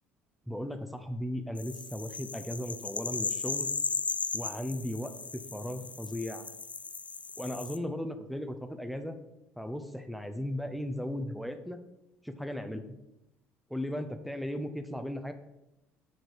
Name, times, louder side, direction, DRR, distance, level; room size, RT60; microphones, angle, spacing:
voice 1, 0.5-3.7 4.3-6.4 7.4-9.2 9.6-11.8 12.2-12.9 13.7-15.3, equal, ahead, 8 dB, 0.7 m, -36 dB
sound 1, 1.6-7.8, left 4 dB, 20° left, 0.4 m, -36 dB
6.5 x 4.6 x 4.7 m, 0.90 s
figure-of-eight pair, 60°, 7 cm